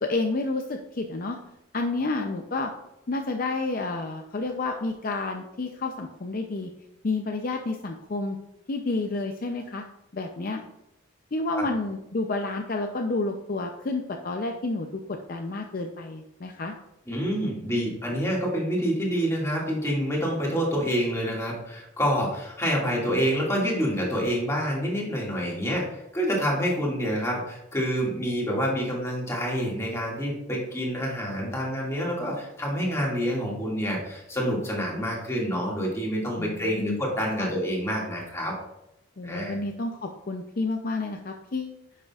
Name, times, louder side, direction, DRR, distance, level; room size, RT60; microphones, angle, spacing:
voice 1, 0.0-1.4 1.7-2.7 3.1-6.7 7.0-8.4 8.7-9.8 10.1-10.6 11.3-16.7 36.4-37.0 37.4-37.5 39.2-41.8, left 3 dB, 45° left, 3 dB, 0.5 m, -30 dB
voice 2, 17.1-38.5 39.2-39.6, equal, 15° left, -3 dB, 2.0 m, -27 dB
9.9 x 6.6 x 2.4 m, 0.86 s
head